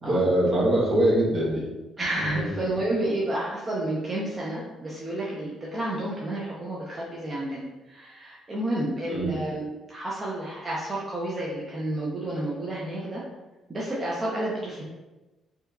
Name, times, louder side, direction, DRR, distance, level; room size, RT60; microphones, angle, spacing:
voice 1, 0.0-1.6 2.2-2.6 9.1-9.3, right 1 dB, 55° right, -5 dB, 1.0 m, -23 dB
voice 2, 2.0-13.2 13.7-14.8, right 1 dB, 30° right, -5 dB, 0.5 m, -30 dB
2.7 x 2.3 x 2.3 m, 1.1 s
cardioid pair, 90°, 0 cm